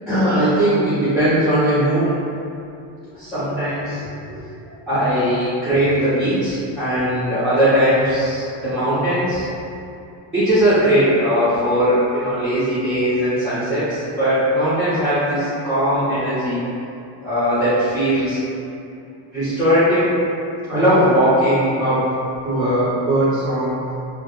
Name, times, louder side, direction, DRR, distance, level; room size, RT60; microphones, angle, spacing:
voice 1, 0.0-2.1 3.1-4.4 4.9-9.5 10.3-16.6 17.2-18.4 19.3-20.1 20.7-22.0 22.4-23.8, equal, ahead, -18 dB, 0.5 m, -19 dB
2.0 x 2.0 x 2.9 m, 2.6 s
cardioid pair, 155°, 48 cm